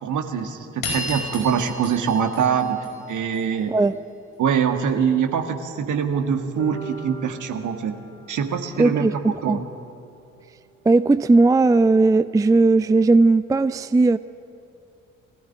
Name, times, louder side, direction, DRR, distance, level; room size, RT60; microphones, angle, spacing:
voice 1, 0.0-3.8 4.4-8.0 8.3-9.7, right 7 dB, 55° right, 6 dB, 1.8 m, -24 dB
sound 1, 0.8-3.4, left 2 dB, 65° left, 5.3 m, -32 dB
sound 2, 6.6-10.7, right 4 dB, 90° right, 4.2 m, -42 dB
voice 2, 8.8-9.6 10.9-14.2, right 3 dB, 10° right, 15 dB, 0.4 m, -17 dB
21.5 x 15.0 x 10.0 m, 2.5 s
figure-of-eight pair, 40°, 37 cm